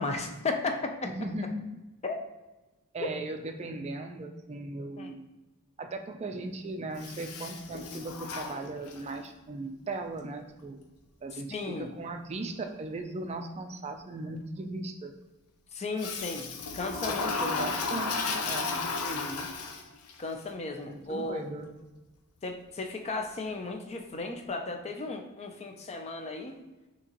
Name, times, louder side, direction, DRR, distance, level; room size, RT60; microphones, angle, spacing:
voice 1, 0.0-0.9 2.0-2.2 3.0-3.1 5.0-5.1 11.3-11.9 15.7-17.3 17.5-17.6 18.1-18.2 19.0-19.5 20.2-21.4 22.4-26.6, left 3 dB, 30° left, 4 dB, 0.5 m, -35 dB
voice 2, 1.0-1.7 2.9-5.3 5.8-10.8 11.2-15.1 17.1-18.8 20.8-21.9, right 2 dB, 30° right, 5 dB, 0.4 m, -38 dB
Toilet flush, 7.0-9.2 16.0-20.1, left 4 dB, 85° left, 0.6 m, -34 dB
6.1 x 2.9 x 2.9 m, 1.1 s
head